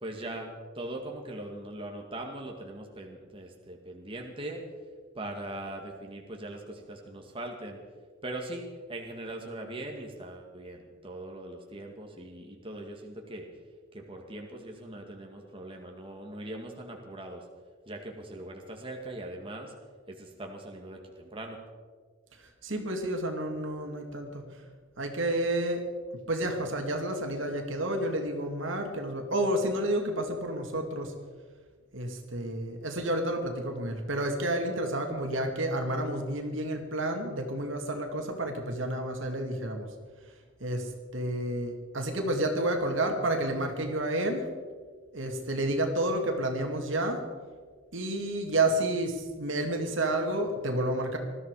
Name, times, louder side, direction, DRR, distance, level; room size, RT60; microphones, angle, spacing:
voice 1, 0.0-4.6 5.2-7.8 8.2-13.5 13.9-17.4 17.9-19.7 20.1-21.6, right 1 dB, 25° right, 1 dB, 1.9 m, -40 dB
voice 2, 22.6-24.4 25.0-25.8 26.3-31.1 31.9-39.9 40.6-44.5 45.1-47.2 47.9-51.2, right 1 dB, 70° right, 3 dB, 2.4 m, -30 dB
20.0 x 13.5 x 4.9 m, 1.5 s
head